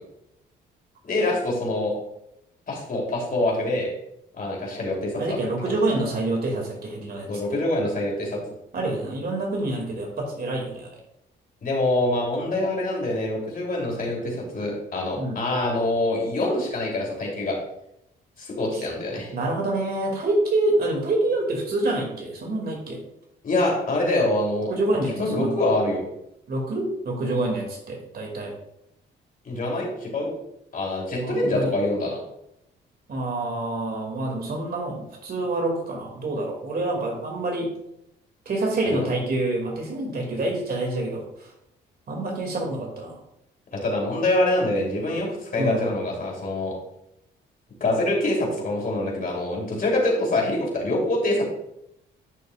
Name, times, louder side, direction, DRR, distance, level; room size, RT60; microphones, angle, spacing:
voice 1, 1.0-1.9 2.7-3.9 4.3-5.4 7.3-8.4 11.6-17.6 18.4-19.3 23.4-24.7 25.1-26.0 29.5-30.3 30.7-32.2 38.8-39.1 43.7-46.7 47.8-51.5, left 1 dB, 45° left, -2 dB, 3.3 m, -25 dB
voice 2, 5.1-7.3 8.7-11.0 15.1-15.4 19.3-23.0 24.7-25.6 26.5-28.5 31.2-31.7 33.1-37.7 38.5-41.3 42.1-43.2 45.6-45.8, right 2 dB, 50° right, 0 dB, 2.6 m, -27 dB
11.0 x 6.6 x 2.5 m, 0.81 s
cardioid pair, 90°, 20 cm